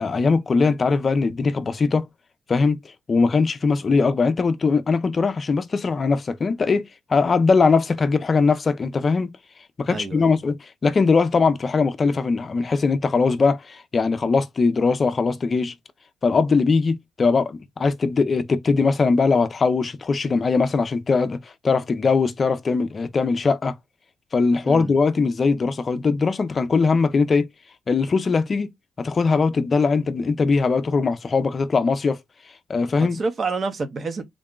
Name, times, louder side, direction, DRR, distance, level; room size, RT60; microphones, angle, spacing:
voice 1, 0.0-2.1 2.5-2.8 3.1-9.3 9.8-15.7 16.2-23.8 24.3-27.5 27.9-28.7 29.0-32.2 32.7-33.2, left 4 dB, 40° left, 0.5 m, -21 dB
voice 2, 9.9-10.3 24.7-24.9 33.1-34.2, right 4 dB, 45° right, 0.8 m, -28 dB
3.7 x 2.1 x 3.7 m
cardioid pair, 90°, 0 cm